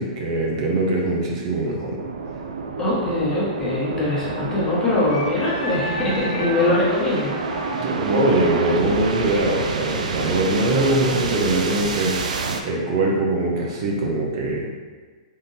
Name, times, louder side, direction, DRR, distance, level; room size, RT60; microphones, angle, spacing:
voice 1, 0.0-2.0 7.8-14.7, right 2 dB, 50° right, -1 dB, 0.7 m, -22 dB
sound 1, 2.0-12.6, right 4 dB, 85° right, 0.4 m, -29 dB
voice 2, 2.8-7.4, left 2 dB, 15° left, -8 dB, 1.2 m, -22 dB
Wind instrument woodwind instrument, 5.1-10.5, equal, 85° left, 0.9 m, -34 dB
3.7 x 2.6 x 4.0 m, 1.5 s
hypercardioid pair, 150°, 4 cm